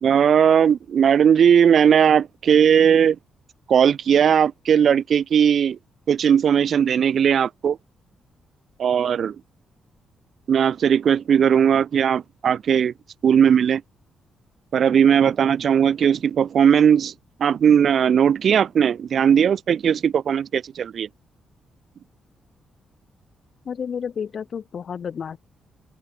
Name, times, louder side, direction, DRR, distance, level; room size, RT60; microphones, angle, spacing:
voice 1, 0.0-3.2 3.7-5.8 6.1-7.8 8.8-9.4 10.5-12.9 13.2-13.8 14.7-17.1 17.4-21.1, right 8 dB, 60° right, 0.7 m, -18 dB
voice 2, 23.7-25.4, left 7 dB, 55° left, 2.9 m, -31 dB
open air
hypercardioid pair, 40°, 0 cm